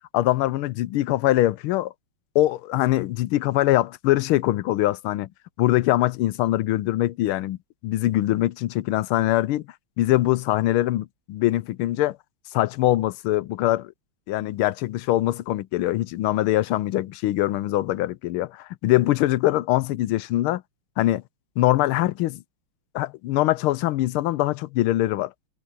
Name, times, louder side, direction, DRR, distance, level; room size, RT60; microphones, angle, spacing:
voice 1, 0.1-1.9 2.3-5.3 5.6-7.6 7.8-9.6 10.0-12.2 12.5-13.9 14.3-20.6 21.0-21.2 21.6-22.4 22.9-25.3, left 15 dB, 85° left, 1.5 m, -23 dB
omnidirectional pair, 2.3 m